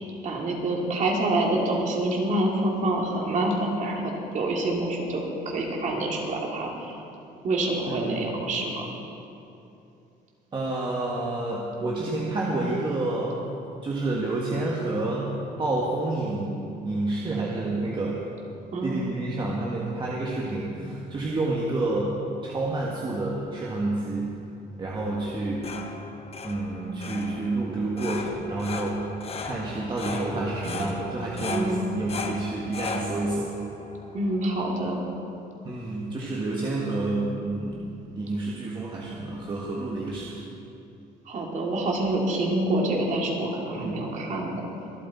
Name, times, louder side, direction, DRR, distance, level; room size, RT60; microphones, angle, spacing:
voice 1, 0.2-6.9 7.4-8.9 18.7-19.0 31.5-31.8 34.1-35.0 41.3-44.5, right 2 dB, 45° right, -1 dB, 2.7 m, -27 dB
voice 2, 7.9-8.3 10.5-13.4 13.8-18.3 18.8-24.4 24.8-25.8 26.4-29.1 29.4-33.5 35.7-37.8 38.1-40.4 43.8-44.0, right 2 dB, 30° right, -4 dB, 1.7 m, -29 dB
sound 1, 25.3-35.0, left 4 dB, 35° left, 1.1 m, -37 dB
24.5 x 8.5 x 4.2 m, 2.7 s
cardioid pair, 110°, 17 cm